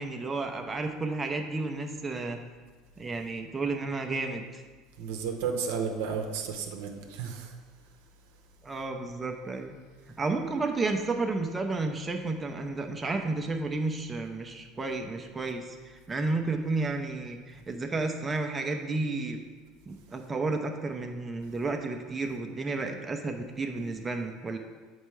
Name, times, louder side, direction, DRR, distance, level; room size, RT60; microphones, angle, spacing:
voice 1, 0.0-2.4 3.0-4.4 8.6-9.7 10.2-19.4 19.9-24.6, right 3 dB, 20° right, 3 dB, 0.6 m, -32 dB
voice 2, 5.0-7.6 21.4-21.5, right 6 dB, 80° right, 3 dB, 0.7 m, -33 dB
7.2 x 4.5 x 3.2 m, 1.4 s
hypercardioid pair, 85°, 0 cm